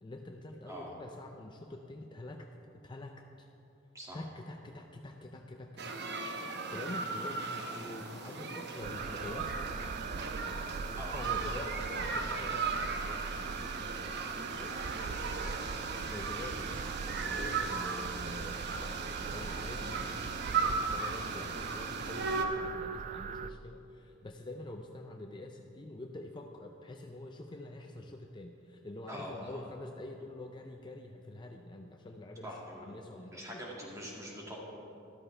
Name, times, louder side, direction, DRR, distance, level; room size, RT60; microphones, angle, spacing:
voice 1, 0.0-2.5 2.8-3.5 4.1-5.9 6.2-9.9 10.4-13.6 14.0-14.2 14.5-18.7 19.3-32.5 32.8-33.6, left 2 dB, 25° left, 3 dB, 0.5 m, -46 dB
sound 1, 5.8-22.4, right 4 dB, 60° right, 0.9 m, -37 dB
sound 2, 8.8-23.5, right 6 dB, 40° right, 0.3 m, -40 dB
voice 2, 29.1-29.6 32.4-34.6, equal, 15° right, -3 dB, 2.2 m, -44 dB
13.5 x 13.0 x 3.3 m, 2.8 s
head